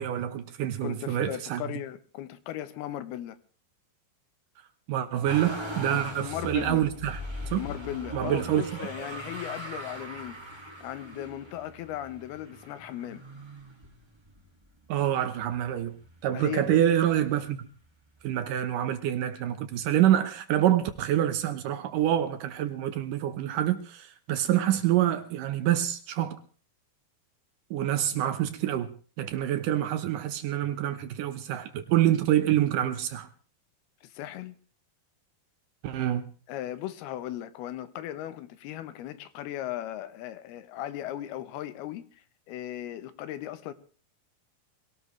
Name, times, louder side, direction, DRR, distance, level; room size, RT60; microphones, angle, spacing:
voice 1, 0.0-1.6 4.9-7.2 7.5-7.6 8.1-8.6 14.9-15.9 16.2-17.6 18.2-26.4 27.7-33.3 35.8-36.3, right 11 dB, 70° right, 2.3 m, -26 dB
voice 2, 0.8-3.4 5.9-6.8 7.6-10.4 10.8-13.2 16.3-16.8 34.0-34.5 36.5-43.7, left 12 dB, 90° left, 2.9 m, -37 dB
Motor vehicle (road), 5.2-14.4 15.0-15.8 16.1-17.2 18.2-18.3, equal, 15° right, 0.8 m, -40 dB
22.5 x 18.0 x 3.2 m
omnidirectional pair, 4.4 m